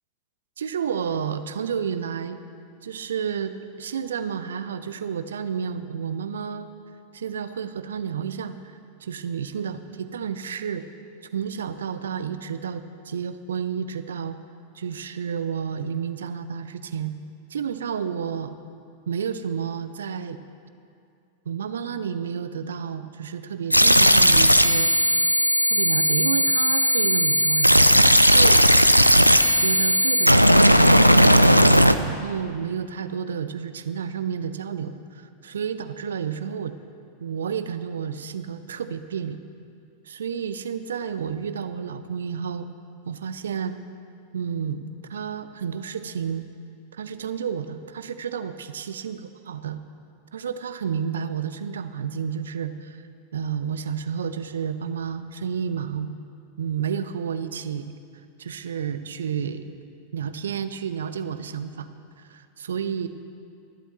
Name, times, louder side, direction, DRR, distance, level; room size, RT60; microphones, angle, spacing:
voice 1, 0.6-2.4 2.8-6.7 7.1-10.8 11.3-14.4 14.7-17.1 17.5-18.6 19.1-20.4 21.5-24.9 25.7-28.8 29.6-36.8 37.2-39.4 40.1-42.7 43.1-43.8 44.3-46.5 46.9-49.2 49.5-49.8 50.3-53.0 53.3-56.1 56.6-57.9 58.4-59.8 60.1-61.9 62.2-63.1, right 7 dB, 65° right, 11 dB, 0.6 m, -31 dB
sound 1, 23.7-31.9, equal, 90° left, 0.4 m, -16 dB
26.0 x 11.5 x 3.1 m, 2.4 s
figure-of-eight pair, 90°, 0 cm